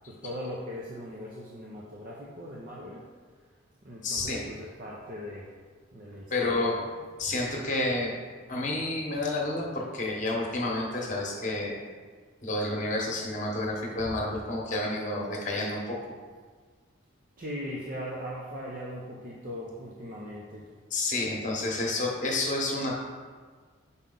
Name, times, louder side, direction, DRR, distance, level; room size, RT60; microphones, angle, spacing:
voice 1, 0.1-3.1 3.8-5.5 5.9-7.0 17.4-20.7, equal, 40° right, -4 dB, 0.6 m, -39 dB
voice 2, 4.0-4.4 6.3-6.8 7.2-8.2 8.5-11.7 12.4-16.0 20.9-22.9, left 2 dB, 35° left, -1 dB, 1.1 m, -30 dB
5.6 x 4.9 x 3.9 m, 1.5 s
head